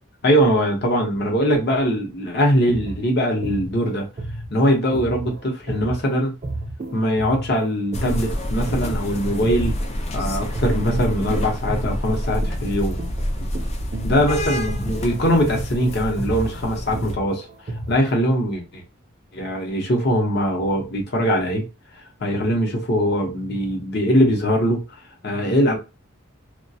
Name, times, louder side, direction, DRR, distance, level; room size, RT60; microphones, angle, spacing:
voice 1, 0.2-4.1 4.5-6.3 6.9-9.7 10.1-13.0 14.0-17.5 17.9-18.8 19.3-21.6 22.2-25.8, equal, 50° left, 0.8 m, -21 dB
sound 1, 2.5-10.2 10.5-18.2, right 2 dB, 35° right, 0.4 m, -32 dB
sound 2, 7.9-17.1, equal, 30° left, 0.4 m, -27 dB
2.3 x 2.2 x 2.6 m
head